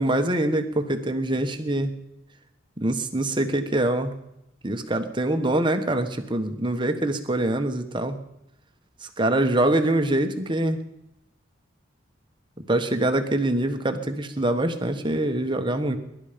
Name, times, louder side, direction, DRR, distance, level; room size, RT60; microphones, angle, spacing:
voice 1, 0.0-1.9 2.8-4.1 4.6-8.2 9.2-10.8 12.7-16.0, right 1 dB, 25° right, 7 dB, 1.3 m, -24 dB
22.0 x 11.5 x 5.2 m, 0.82 s
head